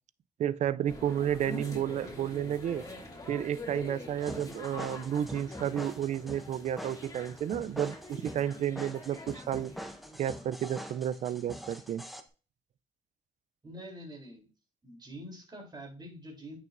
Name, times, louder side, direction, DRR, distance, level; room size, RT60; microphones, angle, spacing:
voice 1, 0.4-2.8 3.3-9.7 10.2-12.1, right 10 dB, 65° right, 0.4 m, -32 dB
sound 1, 0.9-11.3 11.6-11.7, left 1 dB, 30° left, 2.4 m, -46 dB
sound 2, 4.2-12.2, equal, ahead, 1.0 m, -44 dB
voice 2, 13.6-14.5 14.8-16.6, equal, 35° right, 3.4 m, -45 dB
8.8 x 6.2 x 2.6 m
cardioid pair, 70°, 13 cm